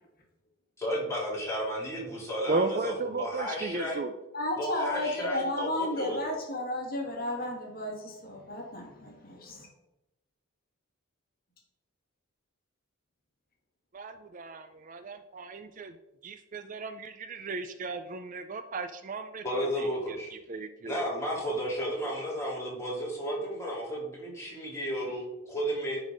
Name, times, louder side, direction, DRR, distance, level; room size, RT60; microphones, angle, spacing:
voice 1, 0.8-4.0 4.6-6.2 19.4-20.3 20.8-26.0, equal, 15° left, -5 dB, 2.9 m, -33 dB
voice 2, 2.5-4.1 13.9-15.9 16.2-20.2 20.5-21.0, right 3 dB, 40° right, 9 dB, 0.4 m, -35 dB
voice 3, 4.3-9.7, left 1 dB, 45° left, 0 dB, 1.7 m, -33 dB
11.0 x 4.1 x 5.1 m, 0.96 s
head